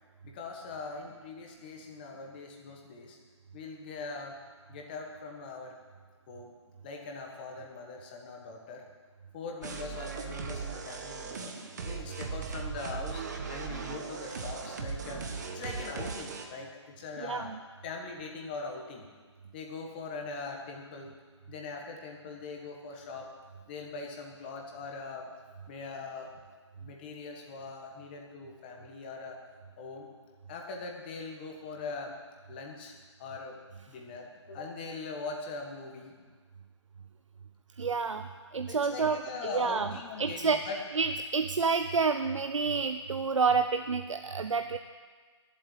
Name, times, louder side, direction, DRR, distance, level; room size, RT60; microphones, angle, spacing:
voice 1, 0.2-3.2 3.5-4.4 4.7-5.8 6.3-6.5 6.8-8.8 9.3-11.6 11.8-15.3 15.5-17.5 17.8-19.0 19.5-21.2 21.5-23.3 23.7-25.3 25.7-26.3 26.8-29.4 29.8-30.1 30.5-32.2 32.5-32.9 33.2-33.6 33.9-36.1 38.7-40.8, left 4 dB, 20° left, 1 dB, 1.5 m, -41 dB
sound 1, 9.6-16.5, right 5 dB, 35° right, 1.3 m, -38 dB
voice 2, 17.2-17.6 37.8-39.2 39.5-39.9 40.2-40.7 40.9-44.8, right 5 dB, 85° right, 8 dB, 0.7 m, -29 dB
11.5 x 8.0 x 9.9 m, 1.5 s
hypercardioid pair, 165°, 16 cm